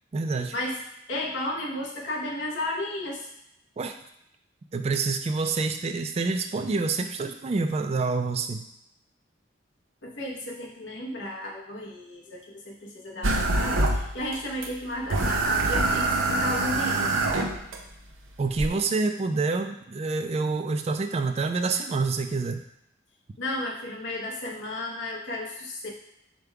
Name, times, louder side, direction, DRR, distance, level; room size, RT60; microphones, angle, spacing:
voice 1, 0.1-0.5 3.8-4.0 4.7-8.7 18.4-22.6, right 3 dB, 30° right, 7 dB, 0.3 m, -27 dB
voice 2, 1.1-3.3 10.0-17.1 23.4-25.9, left 1 dB, 65° left, -2 dB, 0.8 m, -33 dB
sound 1, 13.2-14.4 14.6-14.7 15.1-17.8 18.6-18.7, right 2 dB, 85° right, 0.6 m, -24 dB
5.1 x 2.2 x 4.6 m, 0.83 s
head